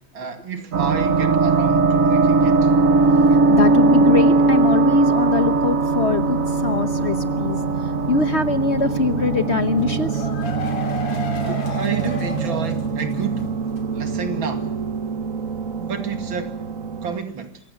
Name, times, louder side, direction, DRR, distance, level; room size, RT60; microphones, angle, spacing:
voice 1, 0.1-2.7 11.4-13.6 13.9-14.8 15.8-16.6 17.0-17.6, right 5 dB, 80° right, 3.1 m, -30 dB
sound 1, 0.7-17.2, right 3 dB, 50° right, 1.3 m, -20 dB
voice 2, 3.5-10.3 11.5-11.6, left 4 dB, 45° left, 1.1 m, -23 dB
sound 2, 9.8-13.4 13.7-13.8 14.1-14.2, left 2 dB, 65° left, 3.7 m, -32 dB
26.5 x 16.0 x 9.7 m
omnidirectional pair, 2.1 m